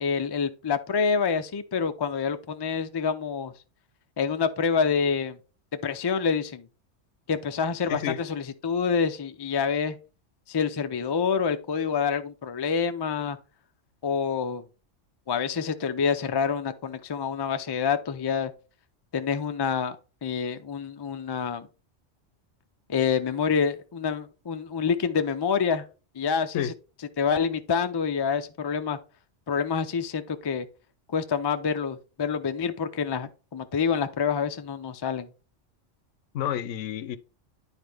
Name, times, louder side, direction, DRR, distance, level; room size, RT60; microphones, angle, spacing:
voice 1, 0.0-3.5 4.2-5.4 5.8-6.7 7.3-10.0 10.5-13.4 14.0-14.6 15.3-18.5 19.1-20.0 20.2-21.7 22.9-25.8 26.2-26.7 27.2-29.0 29.5-30.7 31.1-35.3, left 6 dB, 40° left, 0.3 m, -27 dB
voice 2, 7.9-8.2 26.5-26.7 36.3-37.2, left 10 dB, 80° left, 1.0 m, -30 dB
9.7 x 4.1 x 3.4 m
omnidirectional pair, 1.3 m